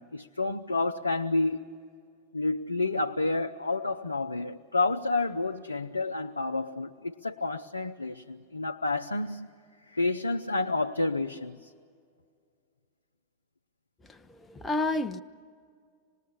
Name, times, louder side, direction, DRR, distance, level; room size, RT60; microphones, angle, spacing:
voice 1, 0.0-1.7 2.3-9.5 9.9-11.6, left 3 dB, 80° left, 0.6 m, -29 dB
voice 2, 14.5-15.2, left 2 dB, 10° left, 0.7 m, -29 dB
26.0 x 20.0 x 8.2 m
figure-of-eight pair, 90°, 0 cm